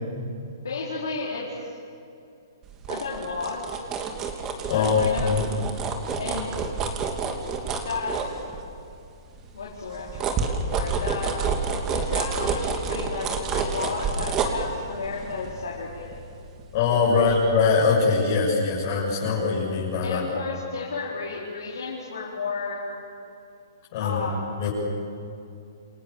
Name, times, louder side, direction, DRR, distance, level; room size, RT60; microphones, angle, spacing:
voice 1, 0.6-1.8 2.9-3.8 4.7-5.3 6.2-6.6 7.8-8.3 9.5-11.4 11.9-16.2 17.1-17.3 20.0-22.9 24.0-24.4, left 4 dB, 85° left, -4 dB, 4.4 m, -33 dB
sound 1, 2.6-8.9 9.3-16.9 17.3-17.4, right 5 dB, 20° right, 2.7 m, -29 dB
voice 2, 4.7-5.4 16.7-20.3 23.9-24.2 24.6-24.7, left 5 dB, 45° left, -7 dB, 7.5 m, -22 dB
28.5 x 26.5 x 7.2 m, 2.6 s
hypercardioid pair, 150°, 2 cm